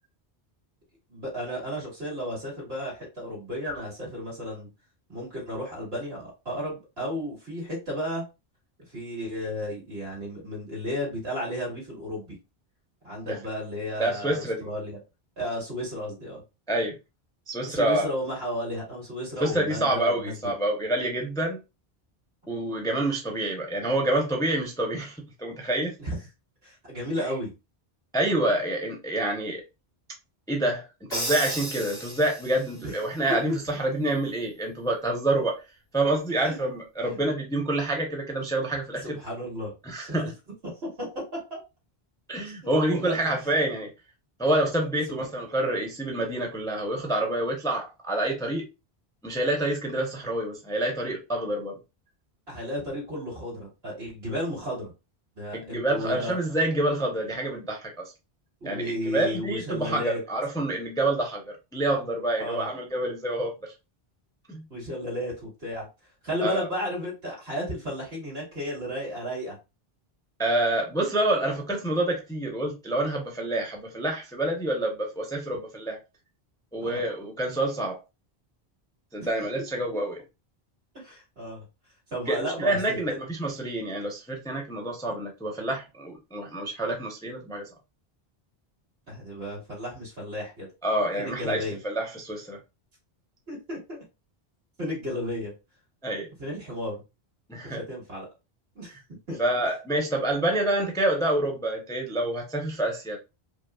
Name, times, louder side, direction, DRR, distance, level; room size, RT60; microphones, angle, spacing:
voice 1, 1.1-4.7 5.1-8.2 8.9-12.3 13.0-15.0 15.4-16.4 17.6-20.5 26.0-26.2 26.6-27.5 32.7-32.9 33.3-33.6 36.4-36.6 39.0-39.7 40.0-40.3 41.0-41.1 41.5-41.6 42.4-43.3 45.1-45.3 52.5-54.9 55.4-56.4 58.6-60.2 62.4-62.7 64.7-65.9 66.2-69.6 76.8-77.0 79.2-79.3 80.9-81.6 82.1-83.2 89.1-90.7 91.2-91.8 93.5-94.0 94.8-95.5 96.4-97.0 97.6-98.3 98.8-98.9 99.3-99.4, equal, 75° right, 2.3 m, -33 dB
voice 2, 14.0-14.7 16.7-17.0 17.5-18.0 19.4-21.6 22.5-25.9 28.1-29.6 30.5-35.6 35.9-39.1 39.8-40.3 42.3-43.9 44.4-48.6 49.2-51.8 55.5-57.9 58.6-63.5 64.5-64.6 66.4-66.7 70.4-76.0 76.7-78.0 79.1-80.2 82.3-87.6 90.8-92.6 96.0-96.3 97.5-97.8 99.4-103.2, right 1 dB, 5° left, 0.6 m, -27 dB
Crash cymbal, 31.1-32.8, right 1 dB, 80° left, 1.9 m, -33 dB
5.1 x 2.0 x 2.3 m
omnidirectional pair, 1.1 m